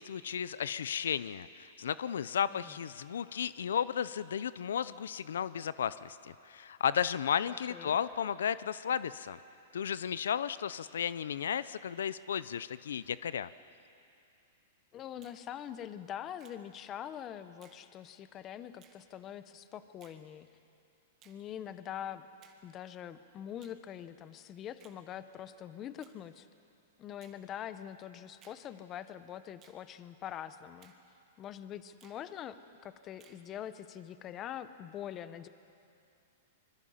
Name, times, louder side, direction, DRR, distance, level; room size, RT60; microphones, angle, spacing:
voice 1, 0.0-9.4 9.7-13.5, left 8 dB, 90° left, 16 dB, 0.5 m, -34 dB
voice 2, 7.5-8.0 14.9-20.5 21.2-22.3 22.6-26.5 27.0-30.9 31.4-35.5, left 10 dB, 25° left, 13 dB, 0.8 m, -44 dB
Finger snapping, 15.2-15.4 16.4-16.6 17.6-17.8 18.8-19.0 20.0-20.2 21.2-21.4 22.4-22.6 23.6-23.8 24.8-25.0 26.0-26.2 27.2-27.4 28.4-28.6 29.6-29.8 30.8-31.0 32.0-32.2 33.2-33.4, right 9 dB, 25° right, 1.8 m, -62 dB
25.0 x 22.5 x 5.7 m, 2.6 s
hypercardioid pair, 150°, 0 cm